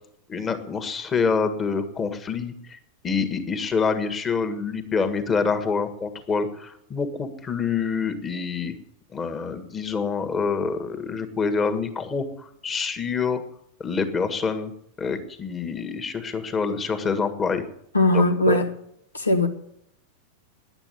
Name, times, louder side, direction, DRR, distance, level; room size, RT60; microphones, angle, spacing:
voice 1, 0.3-2.8 3.0-8.7 9.1-13.4 13.8-14.7 15.0-17.7 18.1-18.6, left 5 dB, 20° left, 1.7 m, -26 dB
voice 2, 17.9-18.7 19.1-19.5, left 1 dB, 80° left, 1.5 m, -19 dB
10.5 x 8.9 x 9.8 m
figure-of-eight pair, 90°, 0 cm